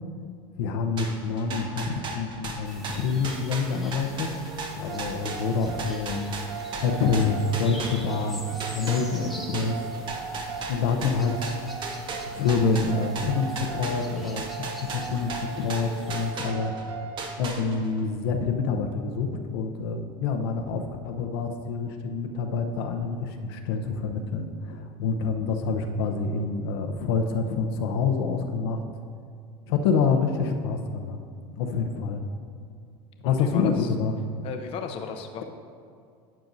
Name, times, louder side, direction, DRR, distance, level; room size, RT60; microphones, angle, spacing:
voice 1, 0.6-4.3 4.7-6.3 6.8-9.8 10.3-10.4 10.7-11.3 12.3-14.4 14.8-16.7 17.4-28.8 29.7-31.2 31.5-32.2 33.2-34.1, left 5 dB, 80° left, 4 dB, 0.8 m, -27 dB
sound 1, 1.0-8.3 8.6-16.8 17.2-18.0, right 3 dB, 40° right, 1.1 m, -36 dB
sound 2, 2.6-16.3, equal, ahead, 1.0 m, -45 dB
sound 3, 4.5-17.3, right 6 dB, 65° right, 0.7 m, -38 dB
voice 2, 33.2-33.9 34.4-35.4, left 6 dB, 45° left, 4 dB, 0.7 m, -35 dB
12.0 x 7.5 x 2.7 m, 2.3 s
supercardioid pair, 120°, 13 cm